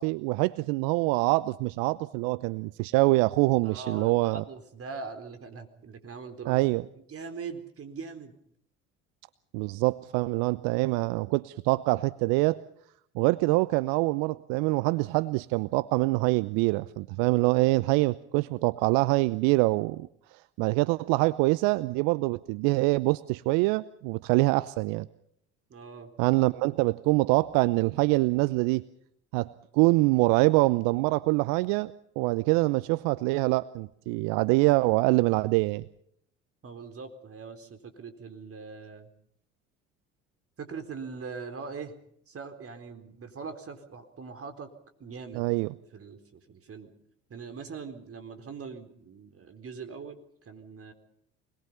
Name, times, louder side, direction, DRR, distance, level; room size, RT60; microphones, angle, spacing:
voice 1, 0.0-4.4 6.5-6.8 9.5-12.6 13.1-25.1 26.2-28.8 29.3-35.8 45.3-45.7, right 22 dB, 65° right, 16 dB, 0.8 m, -25 dB
voice 2, 3.6-6.6 7.1-8.4 25.7-26.1 36.6-39.1 40.6-41.9 42.3-44.7 45.0-45.5 45.9-46.9 47.3-50.9, right 5 dB, 40° right, 8 dB, 4.2 m, -41 dB
25.5 x 21.0 x 5.6 m, 0.69 s
hypercardioid pair, 60°, 36 cm